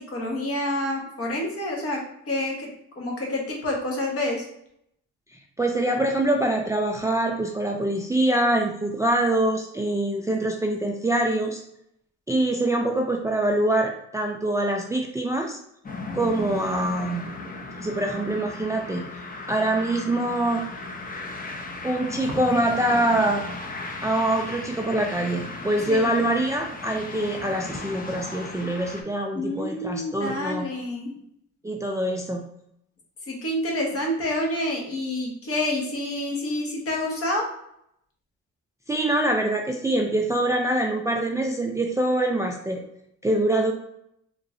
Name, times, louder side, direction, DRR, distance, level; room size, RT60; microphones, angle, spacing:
voice 1, 0.0-2.7 3.0-4.4 25.9-26.2 29.3-31.1 33.3-37.5, left 1 dB, 50° left, -1 dB, 1.2 m, -28 dB
voice 2, 5.6-11.6 12.3-15.6 16.1-17.3 17.8-20.6 21.8-23.4 24.0-30.7 31.6-32.4 38.9-42.8 43.2-43.7, right 1 dB, 10° right, 1 dB, 0.3 m, -24 dB
sound 1, 15.8-29.0, left 2 dB, 30° left, 0.6 m, -36 dB
3.5 x 3.0 x 2.5 m, 0.75 s
cardioid pair, 90°, 30 cm